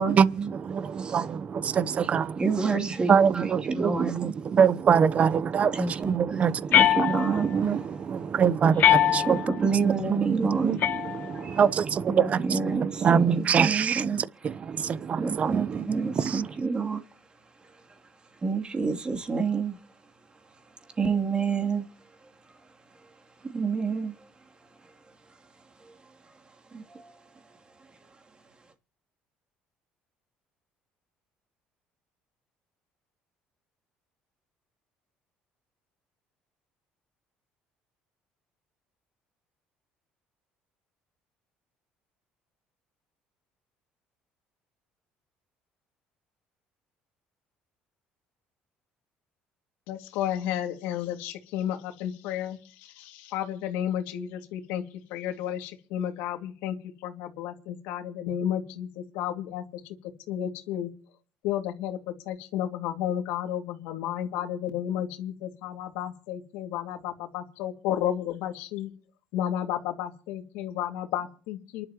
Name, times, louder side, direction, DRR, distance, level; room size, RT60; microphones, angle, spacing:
voice 1, 0.0-16.5, right 7 dB, 40° right, 0.9 m, -25 dB
voice 2, 2.4-4.3 5.7-6.1 6.7-7.5 9.3-10.7 11.3-11.6 12.1-13.2 13.6-14.2 15.2-17.0 18.4-19.8 21.0-21.8 23.4-24.1 26.7-27.1, right 5 dB, 25° right, 3.1 m, -28 dB
sound 1, 6.7-7.6 8.8-9.6 10.8-11.6, left 10 dB, 60° left, 2.6 m, -23 dB
voice 3, 49.9-52.6 53.0-54.8 55.1-56.7 57.0-59.6 60.3-60.9 61.4-68.9 69.3-71.8, left 10 dB, 90° left, 2.4 m, -32 dB
28.5 x 12.0 x 3.1 m
cardioid pair, 105°, 4 cm